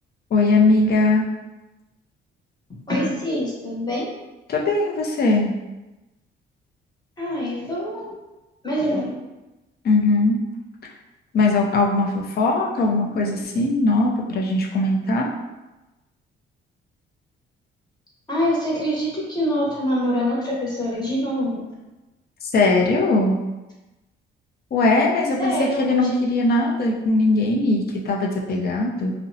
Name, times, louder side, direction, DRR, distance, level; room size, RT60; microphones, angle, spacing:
voice 1, 0.3-1.3 4.5-5.5 9.8-10.4 11.3-15.3 22.5-23.4 24.7-29.1, left 2 dB, 50° left, -1 dB, 0.6 m, -20 dB
voice 2, 2.9-4.1 7.2-8.1 8.6-9.1 18.3-21.6 25.4-26.1, equal, 20° left, -6 dB, 1.0 m, -25 dB
2.7 x 2.1 x 2.6 m, 1.0 s
cardioid pair, 90°, 20 cm